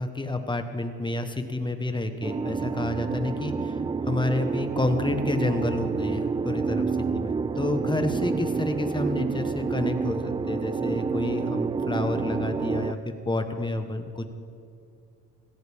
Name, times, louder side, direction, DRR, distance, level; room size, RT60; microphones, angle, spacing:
voice 1, 0.0-14.3, left 2 dB, 15° left, 7 dB, 1.3 m, -29 dB
sound 1, 2.2-12.9, right 5 dB, 15° right, 0.3 m, -29 dB
17.0 x 16.0 x 3.6 m, 2.5 s
cardioid pair, 85°, 35 cm